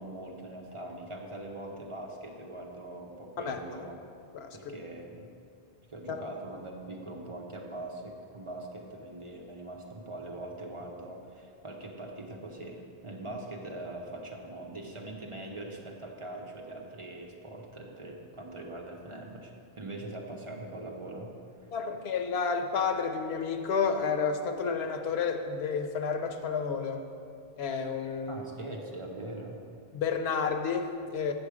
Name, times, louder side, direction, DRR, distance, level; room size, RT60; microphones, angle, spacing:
voice 1, 0.0-4.0 4.5-5.3 5.9-21.3 28.3-29.6, right 1 dB, 35° right, 0 dB, 0.8 m, -42 dB
voice 2, 3.5-3.9 4.3-4.8 6.1-6.2 21.7-27.1 27.6-28.5 29.9-31.3, left 5 dB, 90° left, 6 dB, 0.9 m, -31 dB
8.0 x 6.9 x 4.8 m, 2.5 s
omnidirectional pair, 1.1 m